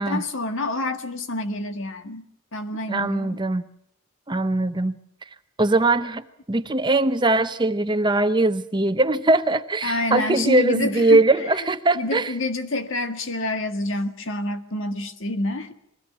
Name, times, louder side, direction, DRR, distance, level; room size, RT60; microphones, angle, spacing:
voice 1, 0.0-2.2 2.5-3.4 9.8-11.2 12.0-15.7, left 2 dB, 60° left, 1.7 m, -27 dB
voice 2, 2.9-3.6 4.3-5.0 5.6-6.2 6.5-12.3, right 2 dB, 20° right, 0.8 m, -21 dB
22.0 x 17.0 x 7.2 m
head